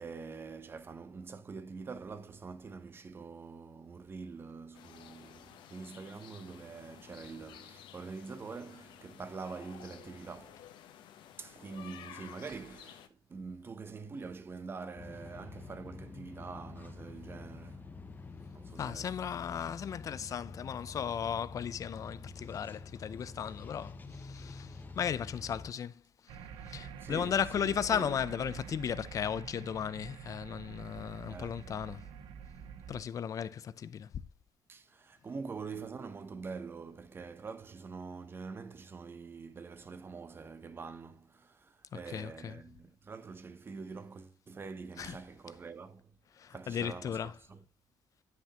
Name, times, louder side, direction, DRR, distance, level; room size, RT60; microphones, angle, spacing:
voice 1, 0.0-10.7 11.4-17.9 18.5-19.2 27.0-28.2 31.3-31.6 34.7-46.2 46.5-47.6, right 4 dB, 30° right, 0.8 m, -45 dB
sound 1, 4.7-13.1, left 10 dB, 80° left, 0.9 m, -53 dB
sound 2, 15.0-25.7, left 3 dB, 20° left, 0.8 m, -47 dB
voice 2, 18.8-26.0 26.7-32.1 32.9-34.2 41.9-42.6 45.0-45.2 46.4-47.3, left 8 dB, 45° left, 0.5 m, -36 dB
sound 3, 26.3-33.0, right 7 dB, 85° right, 0.8 m, -47 dB
9.7 x 5.8 x 3.0 m
cardioid pair, 120°, 8 cm